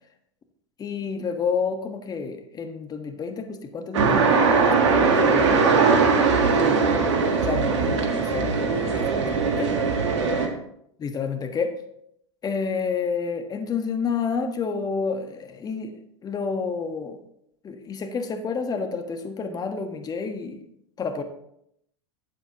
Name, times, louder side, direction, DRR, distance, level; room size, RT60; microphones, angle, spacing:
voice 1, 0.8-6.2 6.5-7.1 7.4-9.7 11.0-11.8 12.4-15.9 16.2-17.2 17.6-20.6 21.0-21.2, left 5 dB, 25° left, 6 dB, 1.4 m, -30 dB
sound 1, 3.9-10.5, right 5 dB, 70° right, 1.6 m, -20 dB
12.5 x 8.6 x 3.0 m, 0.74 s
hypercardioid pair, 90°, 15 cm